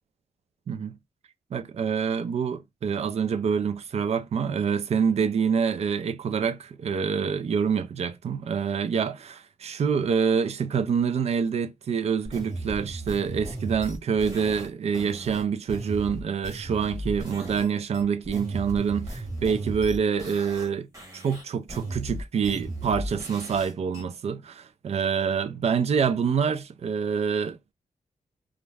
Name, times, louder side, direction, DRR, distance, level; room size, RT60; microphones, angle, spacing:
voice 1, 0.7-1.0 1.5-20.9 21.1-27.7, right 6 dB, 55° right, 0.4 m, -26 dB
sound 1, 12.2-17.7 17.9-20.7 20.9-24.0, right 1 dB, 25° right, 1.1 m, -36 dB
2.4 x 2.1 x 3.2 m
wide cardioid pair, 120°, 13 cm